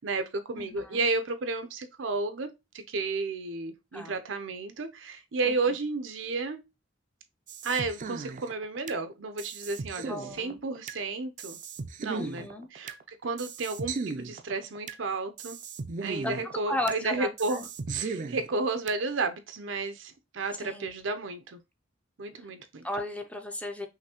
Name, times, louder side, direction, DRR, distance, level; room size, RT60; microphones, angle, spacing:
voice 1, 0.0-6.6 7.6-11.6 12.0-15.6 16.0-21.6 22.2-22.9, right 3 dB, 85° right, 0.7 m, -32 dB
voice 2, 0.6-1.0 3.9-4.2 5.4-5.6 10.0-10.6 12.1-12.7 16.2-16.3 16.7-17.7 20.6-20.9 22.4-22.5 22.8-23.9, left 1 dB, 5° left, 0.5 m, -35 dB
sound 1, 7.5-9.0 9.4-11.0 11.4-13.0 13.4-15.0 15.4-17.0 17.4-19.0, right 4 dB, 45° right, 0.4 m, -37 dB
5.7 x 2.7 x 2.9 m
head